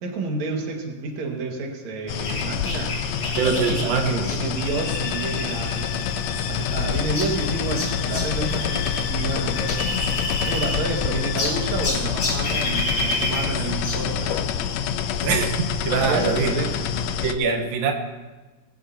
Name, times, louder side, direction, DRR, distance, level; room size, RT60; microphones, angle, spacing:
voice 1, 0.0-2.9 3.4-5.9 6.5-9.8 10.4-14.4 15.9-16.9, right 3 dB, 55° right, 0 dB, 3.0 m, -29 dB
sound 1, 2.1-17.3, left 7 dB, 90° left, 1.5 m, -27 dB
sound 2, 2.2-9.1 9.3-11.0 11.4-14.1, left 1 dB, 40° left, 3.9 m, -30 dB
voice 2, 3.4-4.3 15.2-16.5 17.2-17.9, right 5 dB, 90° right, 3 dB, 3.1 m, -23 dB
sound 3, 4.6-11.9, left 10 dB, 70° left, 2.2 m, -37 dB
21.0 x 16.0 x 2.9 m, 1.2 s
omnidirectional pair, 3.9 m